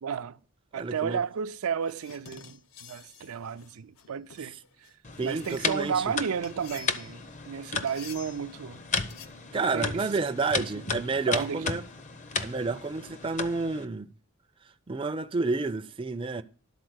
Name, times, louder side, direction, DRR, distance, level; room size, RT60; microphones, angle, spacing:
voice 1, 0.0-0.4 0.7-4.9 5.2-8.9 9.5-10.1 10.5-10.7 11.3-11.6, right 7 dB, 90° right, 0.5 m, -33 dB
voice 2, 0.7-1.2 5.2-6.0 9.5-11.8 12.4-14.1 14.9-16.4, right 3 dB, 25° right, 0.4 m, -30 dB
sound 1, 1.8-6.0 6.4-7.3 7.9-8.5 9.0-9.3, left 7 dB, 80° left, 0.8 m, -49 dB
sound 2, 5.0-13.9, left 4 dB, 35° left, 0.6 m, -35 dB
12.0 x 4.2 x 7.9 m
head